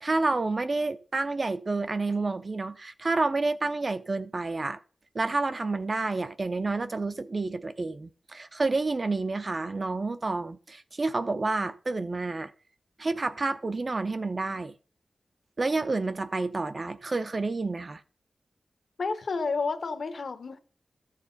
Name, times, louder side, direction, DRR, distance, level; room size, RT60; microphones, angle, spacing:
voice 1, 0.0-4.8 5.1-12.5 13.0-14.7 15.6-18.0, right 3 dB, 40° right, 0.6 m, -29 dB
voice 2, 19.0-20.6, left 4 dB, 65° left, 1.3 m, -30 dB
14.0 x 7.5 x 4.1 m
wide cardioid pair, 125°, 0 cm